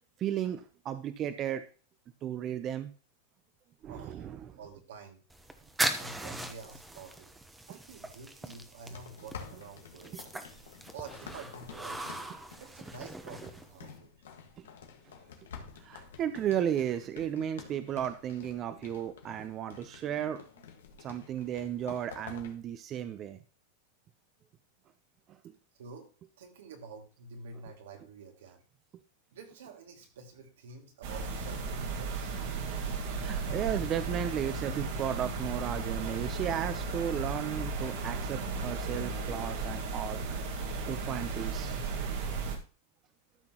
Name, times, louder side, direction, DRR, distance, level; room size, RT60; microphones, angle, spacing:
voice 1, 0.2-1.6 2.2-2.9 3.8-4.4 15.8-20.4 21.0-23.4 25.3-25.4 33.1-40.2 40.9-41.8, right 10 dB, 35° right, 10 dB, 0.7 m, -34 dB
voice 2, 3.9-4.3 4.6-5.2 6.0-7.3 7.7-10.2 10.9-12.1 12.6-14.1 25.8-26.1 26.4-28.6 29.3-32.3, right 4 dB, 85° right, 2 dB, 2.3 m, -48 dB
sound 1, 5.3-14.0, right 1 dB, 5° right, 0.9 m, -39 dB
sound 2, 8.9-22.6, left 6 dB, 90° left, 1.7 m, -50 dB
sound 3, 31.0-42.6, right 4 dB, 65° right, 1.7 m, -35 dB
13.5 x 5.9 x 3.0 m, 0.36 s
supercardioid pair, 130°, 0 cm